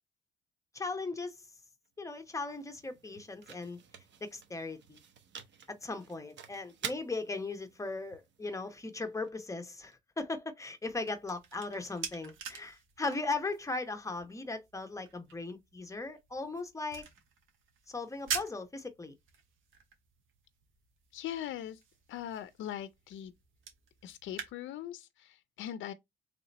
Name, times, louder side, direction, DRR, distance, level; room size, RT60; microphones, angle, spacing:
voice 1, 0.7-1.4 2.0-3.8 4.2-5.0 5.7-17.0 17.9-19.1, left 3 dB, 15° left, 0.9 m, -38 dB
sound 1, 1.9-9.9, right 8 dB, 65° right, 0.9 m, -49 dB
sound 2, 10.7-24.5, right 6 dB, 80° right, 1.3 m, -46 dB
voice 2, 21.1-21.8 22.1-23.3 24.0-25.9, left 11 dB, 75° left, 0.5 m, -41 dB
3.3 x 2.8 x 4.0 m
cardioid pair, 90°, 20 cm